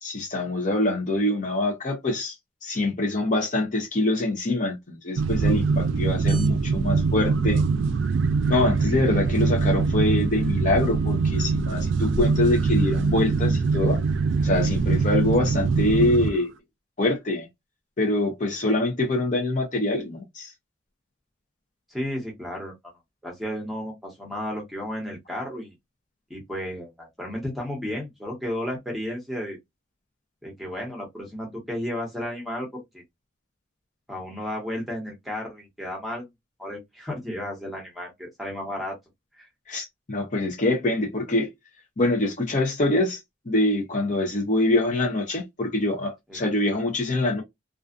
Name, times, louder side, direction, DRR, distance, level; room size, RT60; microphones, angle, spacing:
voice 1, 0.0-2.3 2.6-7.6 8.5-14.0 14.4-16.5 17.0-17.5 18.0-20.5 39.7-41.5 42.0-43.2 43.5-47.4, left 2 dB, 40° left, 0.7 m, -24 dB
sound 1, 5.2-16.3, right 4 dB, 75° right, 0.4 m, -23 dB
voice 2, 21.9-22.9 23.2-25.7 26.3-29.6 30.4-33.0 34.1-36.3 36.6-39.0 39.4-39.5 46.3-46.5, left 1 dB, ahead, 1.0 m, -33 dB
2.4 x 2.3 x 2.4 m
head